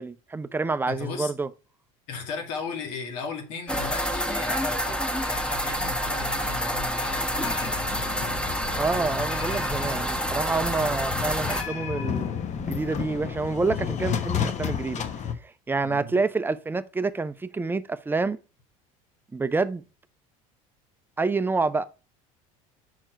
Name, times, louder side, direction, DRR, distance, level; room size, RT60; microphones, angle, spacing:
voice 1, 0.0-1.5 8.8-15.0 15.4-18.4 19.3-19.8 21.2-21.8, right 3 dB, 10° right, 0.5 m, -28 dB
voice 2, 0.9-1.3 2.1-8.5 15.8-16.2, left 5 dB, 75° left, 2.0 m, -36 dB
sound 1, 3.7-11.6, equal, 5° left, 1.4 m, -28 dB
sound 2, 7.4-15.3, left 8 dB, 40° left, 1.1 m, -32 dB
6.3 x 4.4 x 4.5 m
hypercardioid pair, 80°, 18 cm